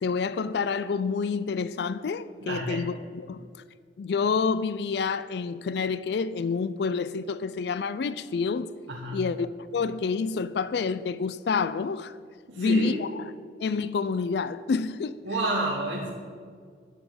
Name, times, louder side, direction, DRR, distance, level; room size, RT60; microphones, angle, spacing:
voice 1, 0.0-3.4 4.0-8.7 9.1-12.2 12.6-13.3 13.6-15.2, left 5 dB, 60° left, 0.3 m, -28 dB
voice 2, 2.4-2.9 8.9-9.2 12.5-13.0 15.2-16.1, right 1 dB, 90° right, 1.5 m, -29 dB
11.0 x 7.0 x 7.8 m
head